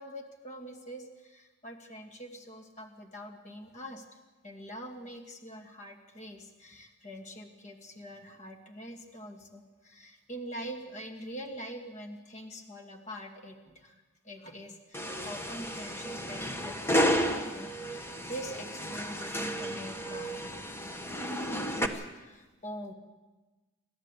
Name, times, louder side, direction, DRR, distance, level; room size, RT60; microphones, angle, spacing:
voice 1, 0.0-4.0 4.4-13.9 14.2-20.3 21.4-22.9, equal, 30° left, 4 dB, 2.3 m, -44 dB
sound 1, 14.9-21.9, equal, 10° left, 1.3 m, -32 dB
29.5 x 12.5 x 8.4 m, 1.2 s
head